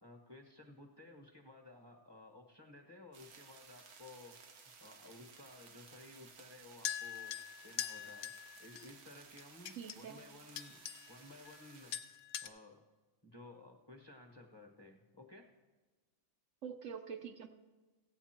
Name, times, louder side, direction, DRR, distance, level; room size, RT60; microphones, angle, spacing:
voice 1, 0.0-4.4 4.8-7.4 7.6-8.3 8.6-10.8 11.1-12.0 12.4-12.8 13.2-15.5, left 2 dB, 20° left, 2 dB, 1.0 m, -56 dB
sound 1, 3.1-12.0, right 5 dB, 85° right, 1.5 m, -58 dB
sound 2, 6.8-8.9 9.4-10.0 10.6-11.2 11.4-11.6 11.9-12.5, left 10 dB, 75° left, 1.0 m, -43 dB
voice 2, 9.7-10.2 16.6-17.5, right 7 dB, 65° right, 5 dB, 0.9 m, -45 dB
15.5 x 8.2 x 4.4 m, 1.3 s
omnidirectional pair, 1.5 m